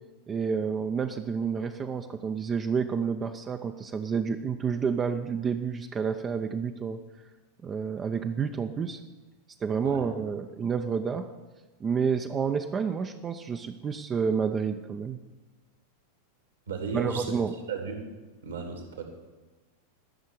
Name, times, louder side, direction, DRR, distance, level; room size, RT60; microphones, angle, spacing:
voice 1, 0.3-7.0 7.6-9.0 9.6-11.2 11.8-15.2 16.9-17.5, right 6 dB, 20° right, 6 dB, 0.6 m, -29 dB
voice 2, 16.7-17.4 17.7-18.1 18.4-19.0, right 5 dB, 70° right, 4 dB, 2.6 m, -34 dB
12.5 x 6.4 x 9.6 m, 1.2 s
figure-of-eight pair, 90°, 0 cm